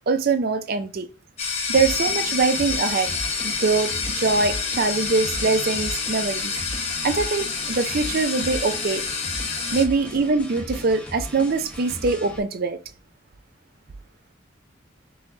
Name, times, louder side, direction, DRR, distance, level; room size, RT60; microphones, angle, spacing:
voice 1, 0.1-1.1 1.7-3.1 3.4-6.5 7.0-9.0 9.7-12.8, right 4 dB, 50° right, 0.5 m, -23 dB
sound 1, 1.4-9.8, left 5 dB, 35° left, 1.0 m, -28 dB
sound 2, 1.7-12.4, equal, 5° left, 0.8 m, -37 dB
3.8 x 3.1 x 3.9 m
head